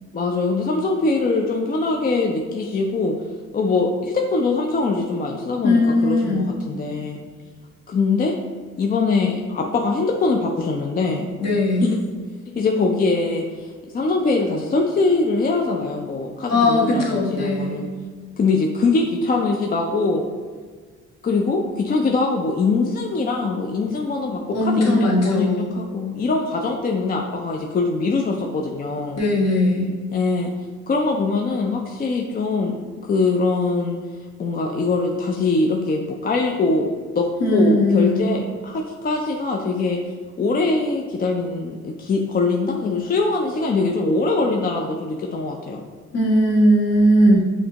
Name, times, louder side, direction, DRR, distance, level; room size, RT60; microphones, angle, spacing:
voice 1, 0.1-3.2 3.5-7.2 7.9-8.3 8.8-11.3 11.8-12.0 12.6-17.9 18.4-20.3 21.2-29.2 30.1-30.5 30.9-34.0 34.4-40.0 40.4-45.8 47.3-47.4, left 3 dB, 30° left, 1 dB, 0.4 m, -22 dB
voice 2, 5.6-6.5 11.4-11.9 16.5-17.8 24.5-25.7 29.1-29.9 37.4-38.2 46.1-47.4, left 1 dB, 55° left, -4 dB, 1.4 m, -18 dB
6.4 x 2.8 x 2.9 m, 1.5 s
cardioid pair, 90°, 30 cm